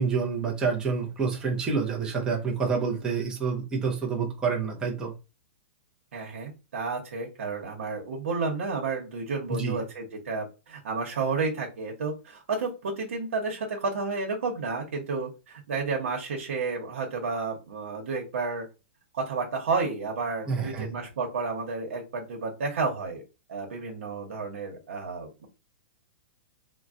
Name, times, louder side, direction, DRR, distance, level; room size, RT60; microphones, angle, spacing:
voice 1, 0.0-5.1 9.5-9.8 20.5-20.9, right 5 dB, 10° right, 0.6 m, -28 dB
voice 2, 6.1-18.6 19.1-23.2 23.5-25.5, right 4 dB, 80° right, 1.0 m, -31 dB
3.7 x 2.1 x 2.5 m
supercardioid pair, 170°, 7 cm